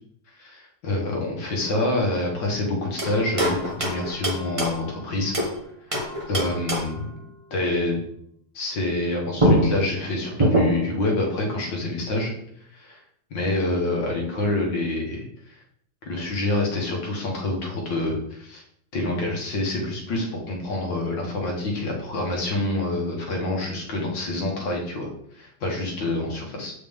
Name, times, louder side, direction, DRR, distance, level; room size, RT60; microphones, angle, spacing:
voice 1, 0.3-5.3 6.3-7.1 7.5-8.0 8.5-12.3 12.7-13.0 13.3-15.6 16.0-18.6 18.9-26.7, left 2 dB, 85° left, -1 dB, 2.2 m, -27 dB
sound 1, 3.0-5.6 5.9-7.1 9.0-9.1 9.4-11.0, equal, 20° right, 0.9 m, -24 dB
7.0 x 5.1 x 3.5 m, 0.71 s
omnidirectional pair, 1.9 m